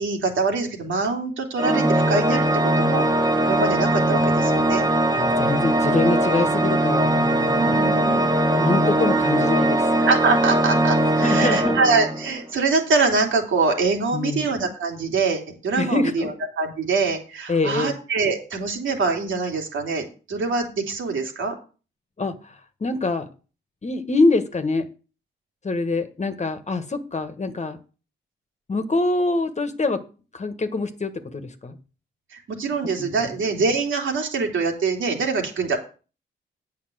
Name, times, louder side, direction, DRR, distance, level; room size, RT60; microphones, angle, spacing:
voice 1, 0.0-3.0 3.4-4.9 7.5-8.4 10.0-21.5 32.3-35.8, right 4 dB, 75° right, 2 dB, 2.8 m, -24 dB
Organ, 1.6-12.4, right 1 dB, 20° right, 1.6 m, -20 dB
voice 2, 5.1-7.8 8.6-9.9 11.2-11.8 14.1-14.5 15.8-16.3 17.5-18.0 22.2-23.3 23.8-24.9 25.6-27.8 28.7-30.0 30.3-31.8 32.8-33.3, left 3 dB, 35° left, 9 dB, 1.5 m, -25 dB
8.5 x 5.8 x 7.8 m, 0.35 s
cardioid pair, 65°, 20 cm